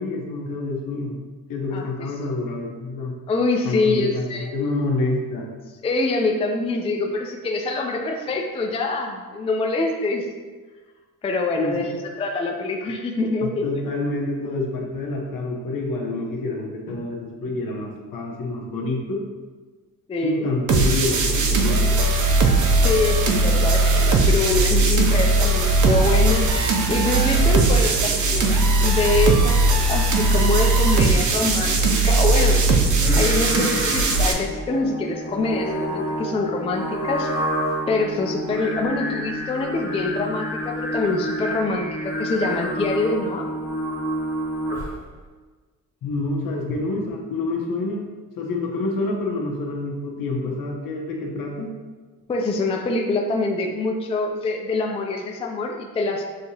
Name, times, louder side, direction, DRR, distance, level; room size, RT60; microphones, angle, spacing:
voice 1, 0.0-3.2 3.6-5.5 11.5-11.9 13.4-19.3 20.2-22.0 46.0-48.1 48.4-51.7, left 2 dB, 70° left, -1 dB, 0.9 m, -27 dB
voice 2, 1.7-2.1 3.3-4.5 5.8-10.3 11.2-11.9 12.2-13.6 20.1-20.4 22.8-26.4 26.9-31.8 32.0-32.6 33.2-37.3 37.9-43.5 52.3-56.2, left 2 dB, 20° left, 1 dB, 0.3 m, -25 dB
sound 1, 20.7-34.3, right 3 dB, 60° right, 0.6 m, -19 dB
Singing, 32.9-45.1, equal, 10° right, 1.3 m, -29 dB
6.5 x 2.8 x 2.7 m, 1.4 s
cardioid pair, 130°, 35 cm